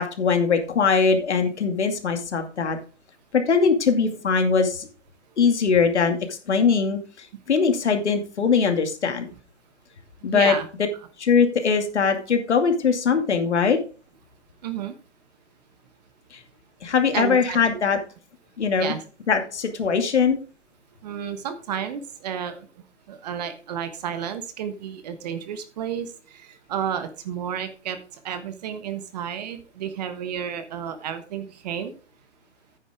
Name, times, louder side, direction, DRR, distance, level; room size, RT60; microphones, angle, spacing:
voice 1, 0.0-2.8 3.3-4.9 5.4-7.0 7.5-9.3 10.2-10.6 11.2-13.8 16.3-16.4 16.8-18.0 18.6-18.9 19.3-20.4, left 5 dB, 70° left, 6 dB, 2.4 m, -21 dB
voice 2, 10.3-10.7 14.6-14.9 17.1-17.6 18.8-19.0 21.0-22.7 23.1-26.1 26.3-28.0 28.2-31.9, right 8 dB, 35° right, 10 dB, 1.3 m, -31 dB
9.6 x 9.4 x 3.6 m, 0.36 s
hypercardioid pair, 145°, 36 cm